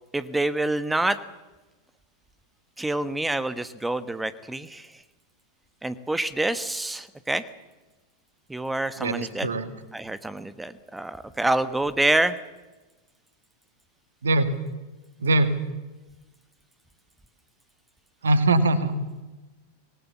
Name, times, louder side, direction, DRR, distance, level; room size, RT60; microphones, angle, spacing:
voice 1, 0.1-1.2 2.8-4.9 5.8-7.4 8.5-9.5 9.9-12.4, right 2 dB, 5° right, 14 dB, 1.2 m, -27 dB
voice 2, 9.0-9.7 14.2-14.5 15.2-15.5 18.2-18.9, right 2 dB, 70° right, 11 dB, 1.9 m, -22 dB
25.0 x 19.0 x 7.1 m, 1.1 s
figure-of-eight pair, 90°, 0 cm